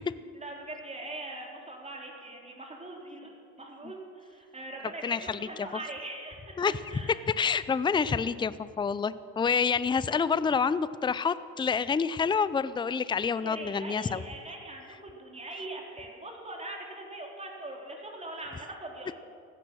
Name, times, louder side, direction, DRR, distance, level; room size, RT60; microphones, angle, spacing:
voice 1, 0.3-7.3 13.4-19.1, right 2 dB, 20° right, 0 dB, 3.9 m, -41 dB
voice 2, 5.0-5.4 6.6-6.8 7.1-14.2, left 6 dB, 15° left, 16 dB, 0.5 m, -28 dB
16.0 x 12.5 x 6.3 m, 2.3 s
supercardioid pair, 80°, 32 cm